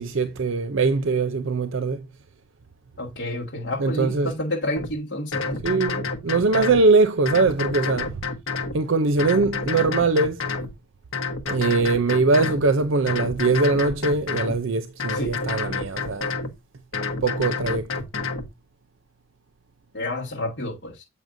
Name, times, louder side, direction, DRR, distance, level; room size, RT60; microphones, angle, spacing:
voice 1, 0.0-2.0 3.8-4.3 5.6-8.1 8.7-10.4 11.5-16.3 17.2-17.9, right 3 dB, 70° right, 0.6 m, -21 dB
voice 2, 3.0-5.6 15.1-15.5 19.9-21.0, left 1 dB, 65° left, 1.7 m, -30 dB
sound 1, 4.8-4.9 5.3-6.8 7.2-8.8 9.2-10.7 11.1-12.6 13.1-14.6 15.0-16.5 16.9-18.5, left 4 dB, 80° left, 1.2 m, -29 dB
7.6 x 5.6 x 2.6 m
head